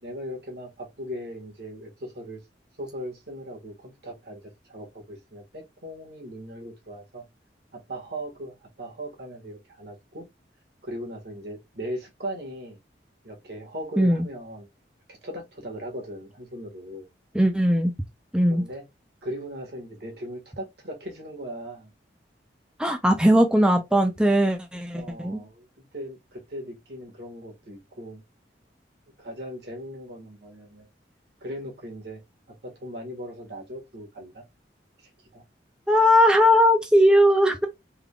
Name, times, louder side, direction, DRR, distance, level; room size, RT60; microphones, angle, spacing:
voice 1, 0.0-2.4 2.8-7.2 7.7-10.3 10.8-12.8 13.2-14.7 15.2-17.1 18.5-18.8 19.2-21.9 24.9-28.2 29.2-30.9 31.4-32.2 32.6-34.4 35.0-35.4, equal, 65° right, 1.5 m, -38 dB
voice 2, 17.3-17.9 18.3-18.6 22.8-25.4 35.9-37.7, equal, 5° right, 0.4 m, -19 dB
3.6 x 3.4 x 2.2 m
head